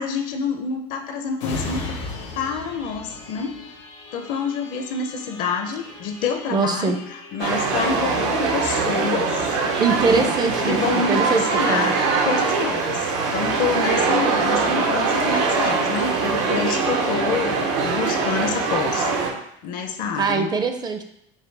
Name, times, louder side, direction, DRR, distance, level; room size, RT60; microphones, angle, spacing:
voice 1, 0.0-2.0 2.3-3.6 4.1-9.6 10.1-10.3 10.7-11.2 11.5-19.1 19.6-20.5, left 5 dB, 60° left, 6 dB, 0.6 m, -27 dB
sound 1, 1.4-14.7 15.1-15.3, left 3 dB, 90° left, 1.3 m, -39 dB
voice 2, 6.5-7.0 9.8-11.4 11.7-11.9 20.2-21.0, right 4 dB, 25° right, 7 dB, 0.5 m, -22 dB
sound 2, 7.4-19.3, right 4 dB, 90° right, 0.8 m, -22 dB
5.2 x 2.3 x 3.3 m, 0.74 s
supercardioid pair, 105°, 15 cm